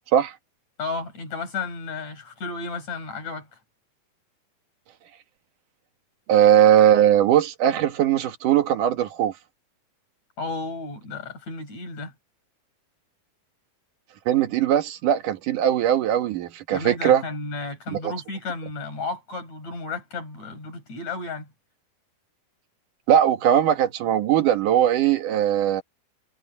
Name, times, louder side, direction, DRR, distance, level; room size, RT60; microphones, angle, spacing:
voice 1, 0.8-3.5 10.4-12.1 16.7-21.5, left 3 dB, 45° left, 9.2 m, -33 dB
voice 2, 6.3-9.3 14.3-17.2 17.9-18.1 23.1-25.8, right 10 dB, 60° right, 2.8 m, -19 dB
omnidirectional pair, 4.5 m